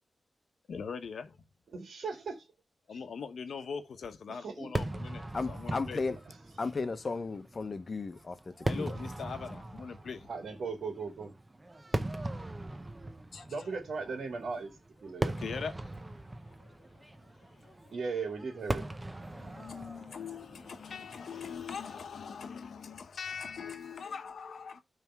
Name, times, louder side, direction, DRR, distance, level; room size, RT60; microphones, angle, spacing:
voice 1, 0.7-1.3 2.9-5.2 5.5-6.0 8.7-10.3 13.3-13.7 15.4-15.7 17.6-17.7 19.3-24.8, left 6 dB, 80° left, 0.9 m, -41 dB
voice 2, 1.7-2.4 4.3-4.9 10.3-11.3 13.5-14.7 15.0-15.3 17.9-18.8, right 4 dB, 80° right, 1.8 m, -37 dB
Fireworks, 4.7-22.1, right 1 dB, 20° right, 0.6 m, -40 dB
voice 3, 5.3-6.2 6.6-9.0, left 4 dB, 40° left, 0.9 m, -35 dB
9.2 x 3.4 x 6.0 m
wide cardioid pair, 130°, 0 cm